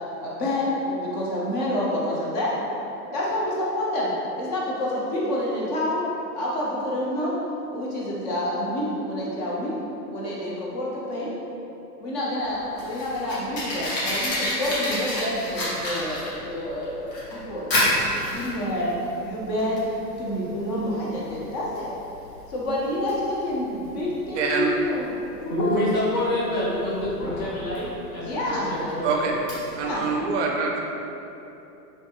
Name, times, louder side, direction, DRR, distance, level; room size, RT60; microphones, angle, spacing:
voice 1, 0.2-2.5 3.1-6.1 6.3-7.4 7.7-9.8 10.1-11.3 12.0-17.9 18.3-19.0 19.2-19.8 20.1-21.9 22.5-25.1 25.6-25.8 28.2-28.7 29.7-30.0, left 1 dB, 25° left, -5 dB, 0.5 m, -28 dB
Fire, 12.4-30.1, left 1 dB, 80° left, 1.4 m, -31 dB
voice 2, 24.4-24.7 29.0-29.3 29.8-30.7, right 5 dB, 45° right, 0 dB, 0.5 m, -25 dB
voice 3, 25.5-29.2, left 1 dB, 50° left, -9 dB, 1.4 m, -27 dB
3.4 x 2.6 x 2.7 m, 2.9 s
hypercardioid pair, 125°, 50 cm